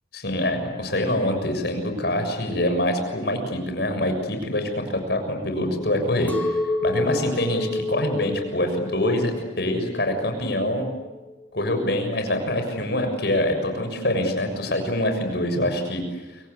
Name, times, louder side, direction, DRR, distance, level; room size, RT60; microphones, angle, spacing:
voice 1, 0.1-6.5 6.8-10.9 11.5-16.0, left 1 dB, 60° left, 5 dB, 6.8 m, -25 dB
Chink clink, 6.3-10.6 11.0-11.6, left 2 dB, 10° left, 2.0 m, -29 dB
29.0 x 25.0 x 8.3 m, 1.2 s
head